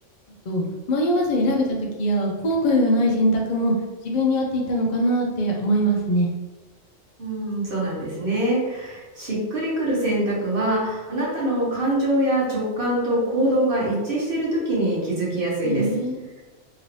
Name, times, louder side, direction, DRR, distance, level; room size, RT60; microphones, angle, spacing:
voice 1, 0.5-1.7 2.0-3.7 4.0-6.3 15.6-16.2, equal, 65° left, -1 dB, 0.4 m, -22 dB
voice 2, 7.2-15.9, right 1 dB, 45° right, -5 dB, 1.1 m, -24 dB
2.9 x 2.6 x 3.1 m, 1.1 s
omnidirectional pair, 1.3 m